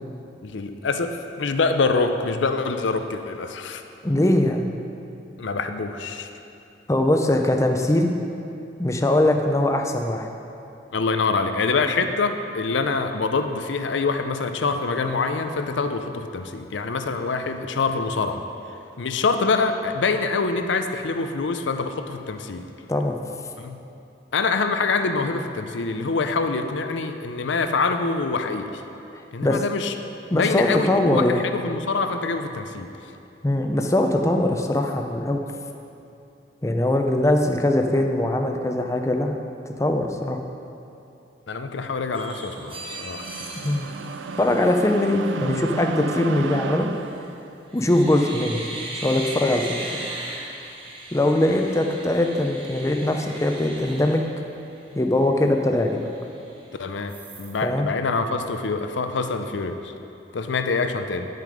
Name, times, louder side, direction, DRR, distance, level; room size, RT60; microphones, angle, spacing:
voice 1, 0.4-3.8 5.4-6.3 10.9-18.4 19.0-22.6 23.6-23.8 24.3-28.7 29.3-29.9 30.3-32.9 41.5-43.2 56.8-59.7 60.3-61.3, left 4 dB, 85° left, 8 dB, 0.6 m, -25 dB
voice 2, 4.0-4.8 6.9-8.1 8.8-10.3 22.9-23.2 29.1-29.6 30.3-31.5 33.4-35.5 36.6-39.4 39.7-40.4 43.6-43.9 44.4-46.9 47.7-48.6 49.0-49.9 51.1-54.2 54.9-56.0 57.6-57.9, left 1 dB, 15° left, 4 dB, 0.5 m, -21 dB
sound 1, 42.1-45.1 47.0-47.3 47.7-55.0 55.4-55.5 55.8-56.7 57.1-57.6, right 2 dB, 30° right, 1.1 m, -38 dB
sound 2, 42.4-47.5, right 4 dB, 85° right, 0.4 m, -33 dB
10.5 x 6.6 x 5.0 m, 2.7 s
head